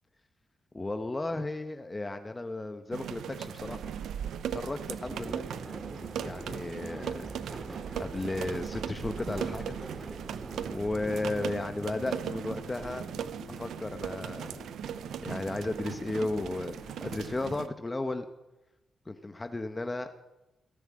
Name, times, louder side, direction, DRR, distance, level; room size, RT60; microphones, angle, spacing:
voice 1, 0.7-3.9 4.5-5.4 6.2-7.2 7.9-9.7 10.7-13.1 13.5-14.6 15.2-18.3 19.1-20.1, left 2 dB, 25° left, 7 dB, 1.1 m, -34 dB
sound 1, 2.9-17.7, right 9 dB, 85° right, 0.7 m, -38 dB
sound 2, 5.0-11.5, right 2 dB, 25° right, 2.1 m, -43 dB
sound 3, 11.0-17.7, left 3 dB, 40° left, 3.4 m, -51 dB
17.5 x 11.0 x 7.7 m, 1.0 s
cardioid pair, 60°, 0 cm